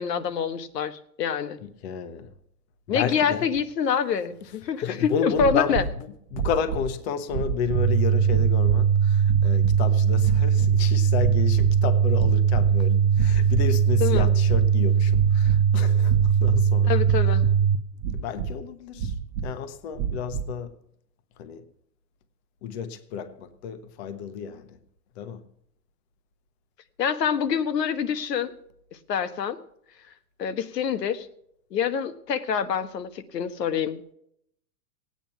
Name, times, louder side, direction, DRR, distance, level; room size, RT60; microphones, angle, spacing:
voice 1, 0.0-1.6 2.9-5.8 14.0-14.3 16.9-17.4 27.0-28.5 29.1-29.6 30.4-31.3 31.7-34.0, left 7 dB, 85° left, 1.5 m, -26 dB
voice 2, 1.6-2.3 2.9-3.5 4.8-17.0 18.1-19.1 19.4-20.7 21.4-21.6 22.6-24.8 25.2-25.4, left 7 dB, 40° left, 1.2 m, -31 dB
sound 1, 5.3-6.0 6.3-6.9 7.3-7.9 8.3-8.9 9.2-9.8 10.2-10.9 11.2-11.8 12.1-12.8 13.1-13.7 14.1-14.7 15.1-15.6 16.0-16.6 17.0-17.6 18.0-18.6 19.0-19.5 19.9-20.5, right 7 dB, 40° right, 1.2 m, -30 dB
sound 2, 7.8-17.8, right 7 dB, 20° right, 0.4 m, -20 dB
17.5 x 9.2 x 5.9 m
hypercardioid pair, 150°, 47 cm